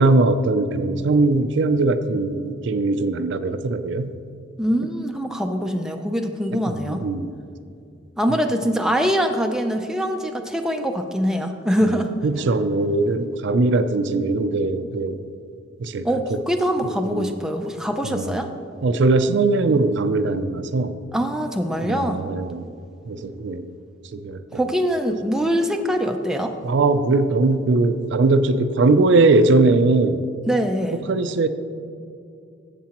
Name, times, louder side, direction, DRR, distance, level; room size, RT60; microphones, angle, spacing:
voice 1, 0.0-4.1 6.5-6.6 6.9-7.3 12.2-15.2 15.8-16.4 16.8-17.3 18.1-18.3 18.8-21.0 21.8-22.7 23.1-23.7 24.1-24.6 26.6-30.2 31.1-31.5, right 3 dB, 60° right, 11 dB, 0.4 m, -20 dB
voice 2, 4.6-7.0 8.2-12.1 16.0-18.5 21.1-22.2 24.5-26.5 30.5-31.0, equal, 5° right, 4 dB, 0.4 m, -23 dB
13.0 x 7.5 x 2.9 m, 2.4 s
head